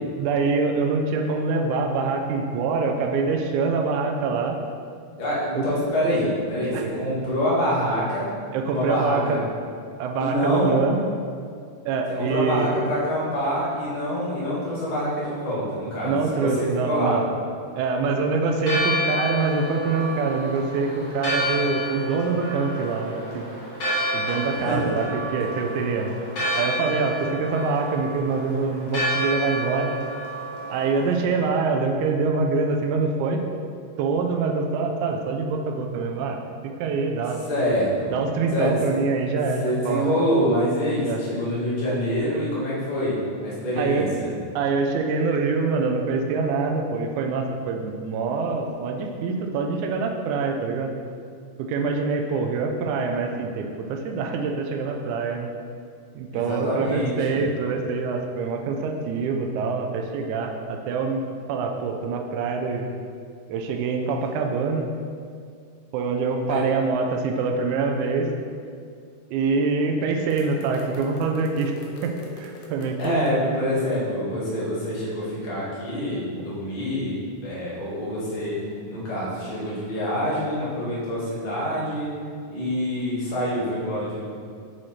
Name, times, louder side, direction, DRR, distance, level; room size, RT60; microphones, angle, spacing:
voice 1, 0.2-4.6 5.5-5.7 6.7-6.8 8.5-9.4 10.0-11.0 11.9-12.7 16.0-17.3 17.7-23.5 24.1-26.1 26.6-29.9 30.7-33.4 34.0-36.4 36.8-37.4 38.1-40.0 41.0-41.2 43.8-44.1 44.6-50.9 51.6-55.5 56.1-61.2 61.5-62.9 63.5-64.9 65.9-68.3 69.3-71.7 72.0-73.7, right 4 dB, 80° right, 3 dB, 2.0 m, -25 dB
voice 2, 5.2-8.3 8.7-9.4 10.2-10.9 12.1-17.2 24.5-24.8 37.5-38.1 38.5-38.7 39.6-43.2 43.4-44.3 56.3-57.4 66.5-66.6 73.0-78.6 78.9-82.1 82.5-84.2, equal, 25° left, -8 dB, 1.0 m, -26 dB
Church bell, 18.6-31.2, equal, 50° left, 1.2 m, -29 dB
sound 1, 70.3-73.3, left 1 dB, 80° left, 2.1 m, -42 dB
6.4 x 4.5 x 4.3 m, 2.2 s
omnidirectional pair, 3.6 m